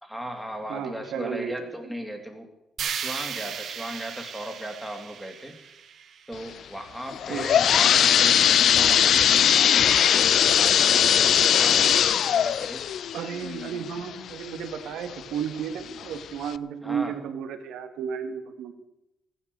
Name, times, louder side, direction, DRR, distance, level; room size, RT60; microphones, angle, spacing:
voice 1, 0.0-2.5 2.9-5.7 6.3-8.5 8.7-12.9 16.8-17.2, equal, ahead, 4 dB, 2.6 m, -37 dB
voice 2, 0.7-1.7 7.3-7.6 13.1-18.7, right 7 dB, 85° right, 8 dB, 1.6 m, -33 dB
sound 1, 2.8-6.9, right 8 dB, 65° right, 1.2 m, -36 dB
sound 2, 7.1-14.7 15.2-15.3 16.0-16.1 16.5-16.6, left 9 dB, 65° left, 0.4 m, -20 dB
15.0 x 10.0 x 6.8 m, 0.90 s
cardioid pair, 90°, 0 cm